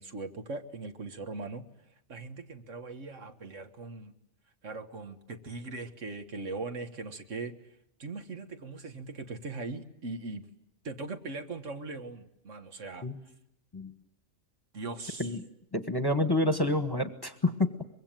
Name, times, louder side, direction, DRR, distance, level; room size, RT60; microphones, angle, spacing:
voice 1, 0.0-1.6 2.1-4.1 4.6-7.6 8.0-10.5 10.8-13.1 14.7-15.3, right 3 dB, 70° right, 8 dB, 1.9 m, -40 dB
voice 2, 15.7-17.8, left 2 dB, 20° left, 9 dB, 1.2 m, -28 dB
24.5 x 22.5 x 9.0 m, 0.80 s
omnidirectional pair, 1.4 m